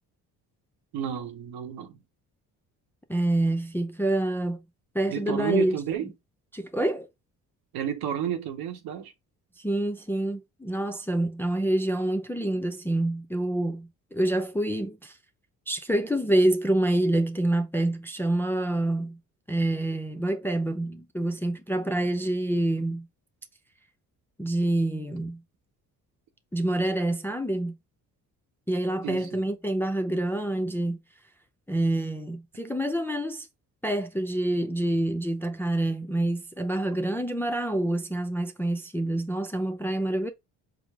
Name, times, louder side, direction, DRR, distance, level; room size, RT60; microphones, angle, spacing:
voice 1, 0.9-2.0 5.1-6.1 7.7-9.1 29.0-29.4, right 9 dB, 80° right, 0.8 m, -31 dB
voice 2, 3.1-4.6 4.9-5.8 6.5-7.1 9.6-15.2 15.7-19.2 19.5-23.1 24.4-25.4 26.5-27.8 28.7-31.0 31.7-33.5 33.8-40.3, right 1 dB, 5° left, 0.4 m, -27 dB
4.7 x 2.0 x 3.4 m
supercardioid pair, 75°, 37 cm